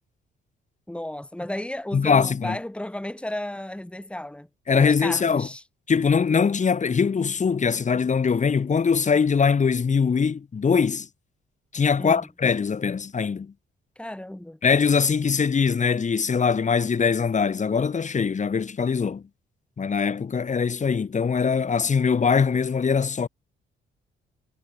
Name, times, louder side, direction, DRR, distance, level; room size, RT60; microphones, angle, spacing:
voice 1, 0.9-5.6 12.0-12.3 14.0-14.6, left 1 dB, 5° left, 5.1 m, -34 dB
voice 2, 1.9-2.6 4.7-5.5 5.9-11.1 11.7-13.5 14.6-19.2 19.8-23.3, left 6 dB, 35° left, 2.5 m, -22 dB
cardioid pair, 90°, 20 cm